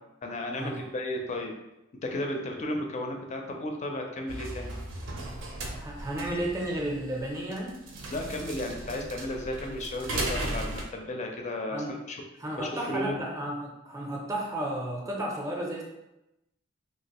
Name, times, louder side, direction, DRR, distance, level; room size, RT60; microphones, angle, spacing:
voice 1, 0.2-1.5 2.0-4.7 8.1-12.2 12.6-13.2, left 1 dB, 35° left, 2 dB, 0.4 m, -34 dB
sound 1, 4.3-10.8, right 2 dB, 75° right, 0.5 m, -36 dB
voice 2, 5.8-7.8 11.7-11.9 12.4-15.9, right 1 dB, 15° right, -1 dB, 0.5 m, -33 dB
2.9 x 2.4 x 2.9 m, 0.93 s
head